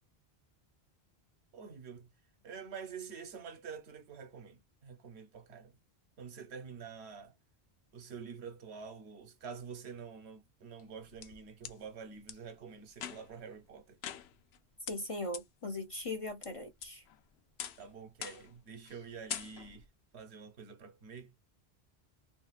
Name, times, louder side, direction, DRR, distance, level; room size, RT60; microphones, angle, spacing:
voice 1, 1.5-2.1 2.4-5.8 6.2-7.3 7.9-14.0 17.8-19.8 20.1-21.3, right 6 dB, 90° right, 1.1 m, -47 dB
sound 1, 10.8-11.7 12.3-12.4 12.9-13.4 14.0-14.6 14.9-15.0 15.3-15.4 15.9-16.5 16.8-17.2 17.6-17.9 18.2-18.5 18.8-19.0 19.3-19.9, left 9 dB, 80° left, 0.8 m, -43 dB
voice 2, 14.9-17.0, left 2 dB, 45° left, 0.4 m, -39 dB
3.1 x 2.8 x 2.3 m
omnidirectional pair, 1.1 m